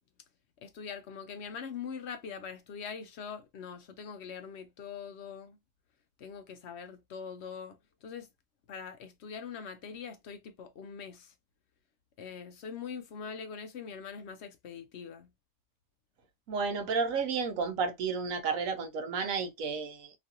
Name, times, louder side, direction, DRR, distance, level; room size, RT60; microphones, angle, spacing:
voice 1, 0.6-5.6 6.2-8.3 8.7-11.3 12.2-15.3, left 6 dB, 65° left, 0.8 m, -43 dB
voice 2, 16.5-20.1, right 5 dB, 85° right, 1.1 m, -32 dB
3.0 x 2.4 x 2.8 m
omnidirectional pair, 1.4 m